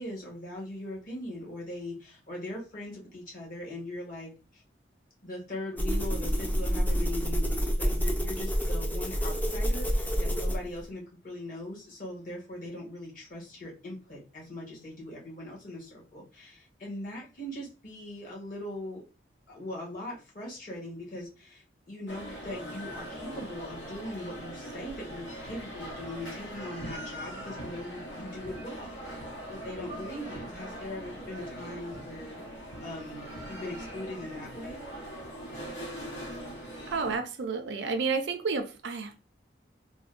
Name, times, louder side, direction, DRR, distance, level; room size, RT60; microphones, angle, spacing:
voice 1, 0.0-4.6 5.2-19.0 19.5-28.9 29.5-32.4 32.8-34.8, left 1 dB, 45° left, 1.2 m, -40 dB
sound 1, 5.8-10.9, equal, 10° left, 0.4 m, -28 dB
sound 2, 22.1-37.2, equal, 85° left, 1.1 m, -41 dB
voice 2, 36.9-39.2, right 4 dB, 70° right, 0.4 m, -31 dB
3.5 x 2.1 x 2.4 m
head